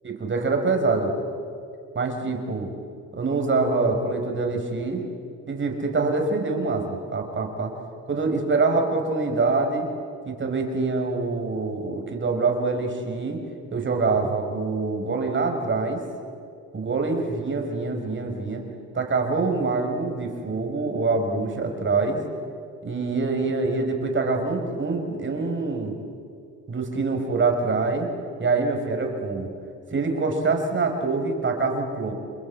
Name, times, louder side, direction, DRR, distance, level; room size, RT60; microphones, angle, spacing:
voice 1, 0.0-1.1 1.9-2.7 3.1-5.0 5.5-7.8 8.1-9.9 10.3-13.4 13.7-16.0 16.7-18.6 18.9-22.2 22.8-25.9 26.7-28.1 28.4-29.5 29.9-32.1, right 3 dB, 40° right, 3 dB, 5.1 m, -25 dB
29.0 x 22.0 x 8.6 m, 2.4 s
cardioid pair, 90°, 30 cm